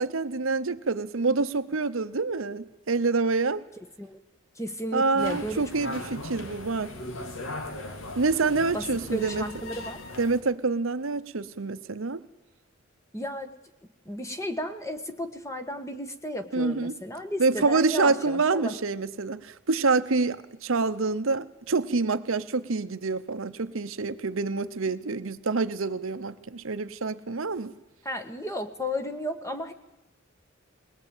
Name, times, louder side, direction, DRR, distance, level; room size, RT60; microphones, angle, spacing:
voice 1, 0.0-3.6 4.9-6.9 8.2-9.4 10.2-12.2 16.5-16.9 17.4-27.7, right 3 dB, 70° right, 0.8 m, -27 dB
voice 2, 4.6-5.7 8.7-10.0 13.1-13.5 14.0-18.7 28.0-29.7, equal, 15° left, 1.4 m, -34 dB
sound 1, 5.2-10.4, left 1 dB, 75° left, 2.0 m, -38 dB
21.0 x 19.5 x 9.0 m
head